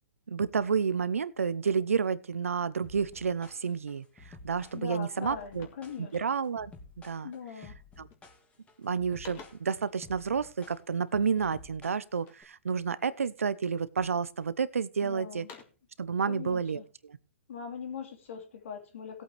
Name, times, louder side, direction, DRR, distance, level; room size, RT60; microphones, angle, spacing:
voice 1, 0.3-5.7 6.0-6.7 7.0-7.3 8.0-8.1 8.8-15.5 16.0-17.2, right 6 dB, 90° right, 18 dB, 0.8 m, -30 dB
sound 1, 2.8-12.4, left 3 dB, 15° left, 2.5 m, -52 dB
voice 2, 4.7-6.4 7.2-7.7 15.0-15.5 16.3-16.8 17.5-19.2, left 7 dB, 65° left, 5 dB, 2.6 m, -41 dB
sound 2, 5.1-6.7 7.3-7.6 8.0-8.5 8.8-9.8 11.3-12.5 13.0-13.7 14.2-14.9 15.2-15.9, left 6 dB, 30° left, 2.8 m, -55 dB
18.0 x 8.5 x 3.3 m, 0.31 s
hypercardioid pair, 130°, 7 cm